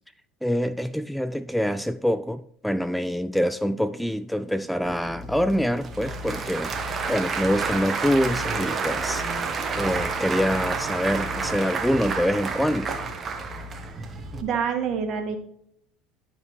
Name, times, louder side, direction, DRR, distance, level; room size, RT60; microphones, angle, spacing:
voice 1, 0.4-6.8 7.1-12.9, equal, ahead, 14 dB, 0.3 m, -25 dB
Applause / Crowd, 4.8-14.4, right 4 dB, 35° right, 1.2 m, -30 dB
voice 2, 14.4-15.4, right 6 dB, 50° right, 4 dB, 1.7 m, -26 dB
11.5 x 5.0 x 3.2 m, 0.72 s
hypercardioid pair, 70°, 0 cm